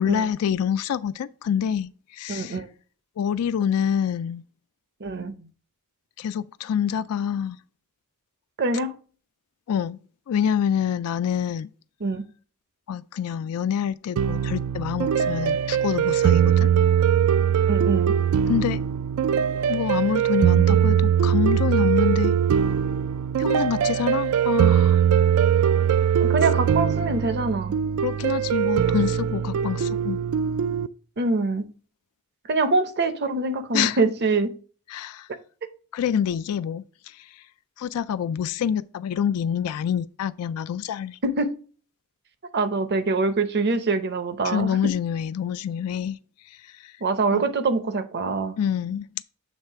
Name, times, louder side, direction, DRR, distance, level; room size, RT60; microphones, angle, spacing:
voice 1, 0.0-2.6 3.2-4.4 6.2-7.6 9.7-10.0 10.3-11.7 12.9-16.7 18.5-18.8 19.7-22.3 23.4-25.0 28.0-30.2 33.7-34.0 34.9-35.3 35.9-36.8 37.8-41.2 44.4-46.2 46.8-46.9 47.3-47.4 48.6-49.1, left 8 dB, 85° left, 0.3 m, -26 dB
voice 2, 2.3-2.7 5.0-5.4 8.6-8.9 12.0-12.2 17.7-18.1 26.2-27.7 31.2-31.7 32.5-34.5 41.2-41.5 42.5-44.9 47.0-48.5, right 3 dB, 50° right, 0.7 m, -24 dB
sound 1, 14.2-30.9, right 8 dB, 75° right, 0.3 m, -21 dB
7.4 x 3.2 x 4.5 m
head